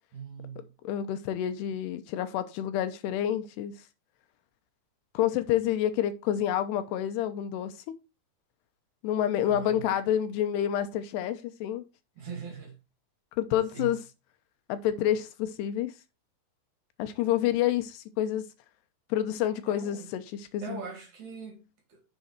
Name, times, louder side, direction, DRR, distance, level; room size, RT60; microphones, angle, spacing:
voice 1, 0.1-0.7 9.4-9.9 12.2-12.8 13.7-14.0 19.7-20.1 20.6-22.0, right 6 dB, 50° right, 3.2 m, -41 dB
voice 2, 0.8-3.7 5.1-7.7 9.0-11.9 13.4-14.0 14.7-15.9 17.0-18.5 19.1-20.2 20.5-20.8, left 11 dB, 85° left, 3.0 m, -28 dB
7.0 x 6.6 x 4.6 m
omnidirectional pair, 4.7 m